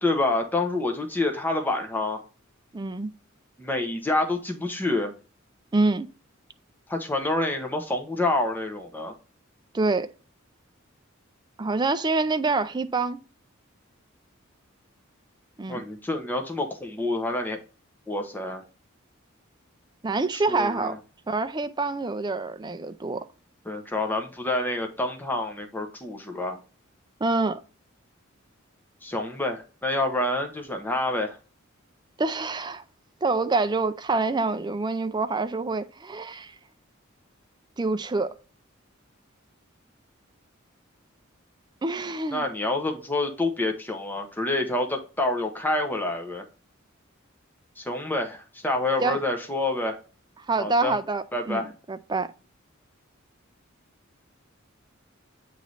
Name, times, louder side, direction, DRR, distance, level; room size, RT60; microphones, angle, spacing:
voice 1, 0.0-2.2 3.6-5.1 6.9-9.1 15.7-17.6 18.1-18.6 20.3-21.0 23.7-26.6 29.0-31.4 42.3-46.4 47.8-50.0 50.6-51.0 51.3-51.7, left 2 dB, 10° left, 0.7 m, -27 dB
voice 2, 2.7-3.1 5.7-6.1 9.7-10.1 11.6-13.2 15.6-15.8 20.0-20.9 21.3-23.2 27.2-27.6 32.2-32.8 33.2-36.5 37.8-38.4 41.8-42.4 49.0-49.2 50.5-52.3, right 3 dB, 20° right, 0.4 m, -26 dB
8.3 x 3.1 x 3.9 m
head